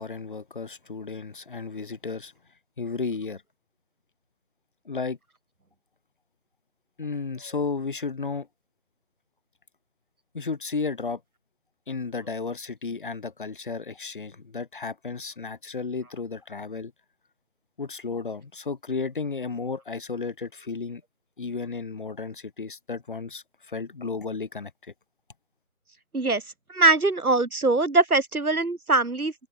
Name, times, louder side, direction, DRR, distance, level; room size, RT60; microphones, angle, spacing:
voice 1, 0.0-2.3 2.8-3.4 4.8-5.2 7.0-8.5 10.3-11.2 11.9-16.9 17.8-21.0 21.4-24.9, left 4 dB, 35° left, 3.1 m, -33 dB
voice 2, 26.7-29.3, right 3 dB, 85° right, 2.0 m, -22 dB
figure-of-eight pair, 160°, 42 cm